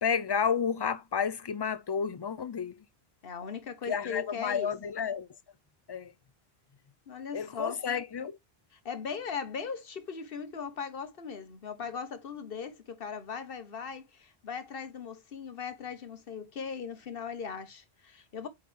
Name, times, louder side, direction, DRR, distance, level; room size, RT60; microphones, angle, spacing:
voice 1, 0.0-2.8 3.9-5.3 5.9-6.1 7.3-8.4, left 6 dB, 30° left, 0.5 m, -31 dB
voice 2, 3.2-4.7 7.1-7.8 8.7-18.5, left 6 dB, 60° left, 1.3 m, -39 dB
8.5 x 3.8 x 3.3 m
omnidirectional pair, 1.1 m